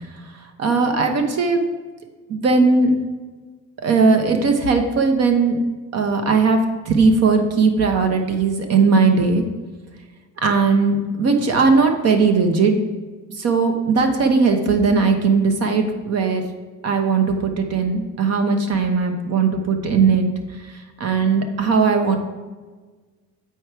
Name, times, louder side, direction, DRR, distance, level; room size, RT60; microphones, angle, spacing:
voice 1, 0.6-1.6 2.3-2.9 3.8-5.6 5.9-9.4 10.4-12.9 13.4-16.5 16.8-20.3 20.6-20.7 21.0-22.2, right 4 dB, 55° right, 5 dB, 1.1 m, -18 dB
8.5 x 4.6 x 4.6 m, 1.3 s
cardioid pair, 145°, 31 cm